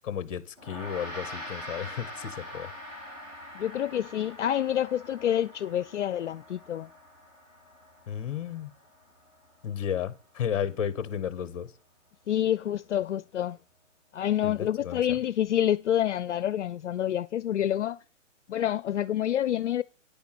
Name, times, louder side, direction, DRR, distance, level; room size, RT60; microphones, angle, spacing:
voice 1, 0.0-2.7 8.1-8.7 9.6-11.7 14.4-15.0, left 8 dB, 25° left, 1.1 m, -33 dB
Gong, 0.6-10.1, left 1 dB, 30° right, 3.7 m, -44 dB
voice 2, 3.5-6.9 12.3-13.6 14.1-18.0 18.5-19.8, left 11 dB, 65° left, 0.5 m, -28 dB
10.0 x 7.0 x 6.0 m
hypercardioid pair, 170°, 38 cm